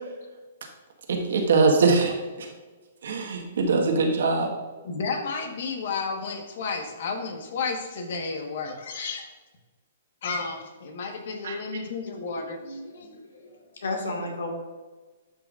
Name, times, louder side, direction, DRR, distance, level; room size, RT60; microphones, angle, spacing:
voice 1, 1.1-2.5 3.0-4.5 11.4-11.6, right 4 dB, 80° right, 1 dB, 1.5 m, -22 dB
voice 2, 4.8-9.3 10.2-13.2, left 4 dB, 60° left, 4 dB, 1.4 m, -32 dB
voice 3, 12.2-14.5, left 2 dB, 85° left, 1 dB, 1.9 m, -35 dB
12.0 x 5.6 x 2.5 m, 1.3 s
hypercardioid pair, 155°, 0 cm